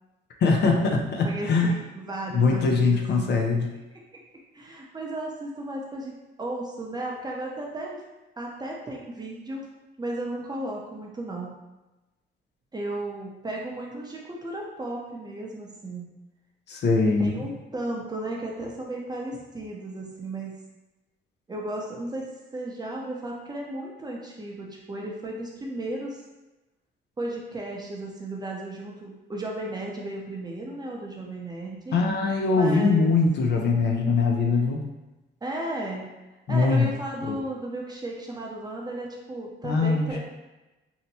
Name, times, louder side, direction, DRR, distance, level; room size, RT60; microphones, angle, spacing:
voice 1, 0.4-1.7 2.3-3.7 16.7-17.4 31.9-34.8 36.5-36.9 37.2-37.4 39.6-40.2, left 4 dB, 55° left, 1 dB, 0.6 m, -22 dB
voice 2, 1.2-3.4 4.5-8.0 8.4-9.7 10.0-11.5 12.7-16.0 17.2-20.7 21.5-26.2 27.2-32.0 32.6-33.1 35.4-36.1 36.5-40.2, right 1 dB, 20° right, -2 dB, 0.6 m, -34 dB
2.8 x 2.1 x 4.0 m, 1.1 s
cardioid pair, 105°, 20 cm